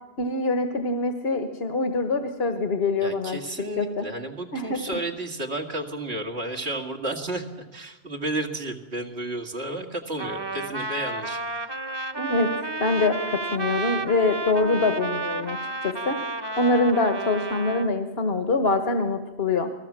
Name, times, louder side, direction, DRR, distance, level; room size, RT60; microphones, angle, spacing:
voice 1, 0.2-3.4 3.8-4.0 4.5-4.8 12.2-12.5 12.8-15.6 15.8-16.2 16.6-19.7, left 3 dB, 70° left, 6 dB, 1.6 m, -24 dB
voice 2, 3.0-11.7, right 2 dB, 80° right, 3 dB, 2.5 m, -32 dB
Trumpet, 10.2-17.9, right 3 dB, 25° right, 1.1 m, -31 dB
28.5 x 19.5 x 7.5 m, 1.1 s
omnidirectional pair, 1.1 m